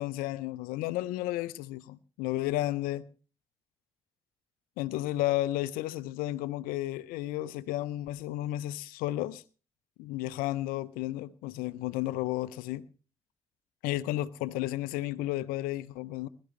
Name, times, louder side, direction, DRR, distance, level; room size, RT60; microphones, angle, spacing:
voice 1, 0.0-3.1 4.8-9.4 10.0-12.8 13.8-16.3, left 15 dB, 75° left, 0.6 m, -32 dB
21.0 x 12.5 x 3.2 m
hypercardioid pair, 40°, 15 cm